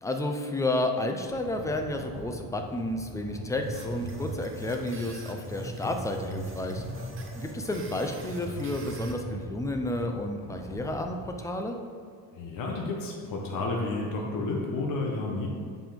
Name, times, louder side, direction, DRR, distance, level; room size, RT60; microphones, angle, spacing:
voice 1, 0.0-6.8 7.3-11.8, left 1 dB, 10° left, 4 dB, 0.5 m, -31 dB
sound 1, 1.3-11.3, equal, 90° left, 2.3 m, -40 dB
sound 2, 3.6-9.1, right 3 dB, 30° right, 0.9 m, -47 dB
voice 2, 12.3-15.5, left 3 dB, 55° left, -1 dB, 1.2 m, -31 dB
7.8 x 5.5 x 5.1 m, 2.1 s
cardioid pair, 165°, 38 cm